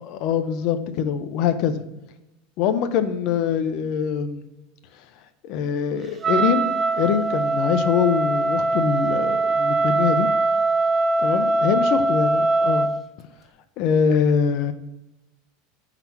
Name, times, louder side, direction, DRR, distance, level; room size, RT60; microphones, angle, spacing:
voice 1, 0.0-1.8 2.6-4.5 5.4-6.7 6.9-10.3 11.2-12.9 13.8-14.7, left 7 dB, 45° left, 11 dB, 0.5 m, -23 dB
Wind instrument woodwind instrument, 6.2-13.0, right 2 dB, 15° right, 0.4 m, -21 dB
5.7 x 3.9 x 4.5 m, 0.93 s
supercardioid pair, 160°, 0 cm